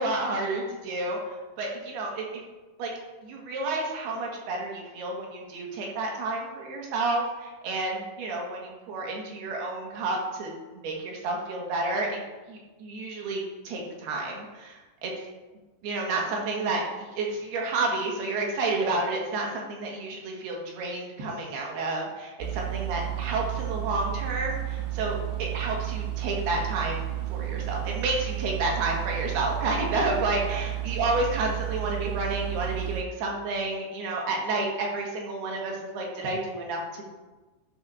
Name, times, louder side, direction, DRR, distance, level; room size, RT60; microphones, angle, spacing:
voice 1, 0.0-2.4 2.8-2.9 3.2-12.2 12.5-15.1 15.8-37.1, right 2 dB, 70° right, -1 dB, 3.4 m, -30 dB
sound 1, 22.4-33.0, right 15 dB, 90° right, 2.8 m, -32 dB
12.0 x 5.5 x 4.8 m, 1.2 s
omnidirectional pair, 4.8 m